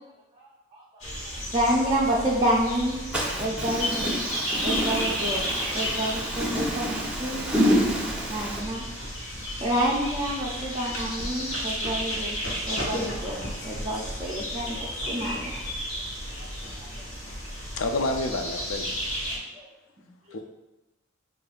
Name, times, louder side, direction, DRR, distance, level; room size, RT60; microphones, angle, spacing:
sound 1, 1.0-19.4, equal, 90° left, 1.1 m, -33 dB
voice 1, 1.5-3.0 3.4-4.1 4.6-5.4 5.7-7.4 8.3-8.8 9.6-12.3 12.7-15.5 16.8-16.9 19.3-19.7, right 1 dB, 25° right, -5 dB, 0.5 m, -28 dB
voice 2, 3.1-8.6, equal, 5° right, -4 dB, 0.9 m, -28 dB
voice 3, 17.8-19.0 20.3-20.4, left 2 dB, 70° left, 6 dB, 0.4 m, -28 dB
6.4 x 2.6 x 2.4 m, 1.0 s
head